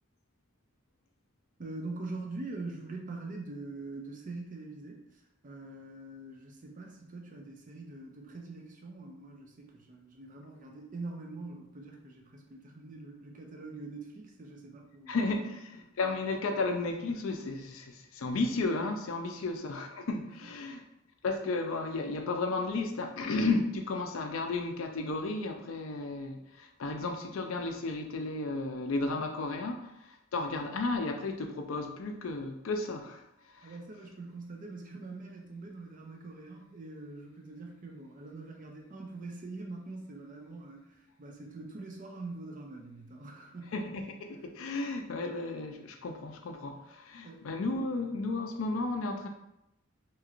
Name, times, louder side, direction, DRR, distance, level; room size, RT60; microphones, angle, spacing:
voice 1, 1.6-5.0 5.4-15.1 19.3-19.4 20.4-20.5 33.6-43.7 47.2-47.4, right 2 dB, 40° right, 1 dB, 0.6 m, -44 dB
voice 2, 15.1-20.8 21.2-33.7 43.7-49.3, left 3 dB, 70° left, 5 dB, 0.4 m, -33 dB
3.0 x 2.9 x 2.4 m, 0.85 s
head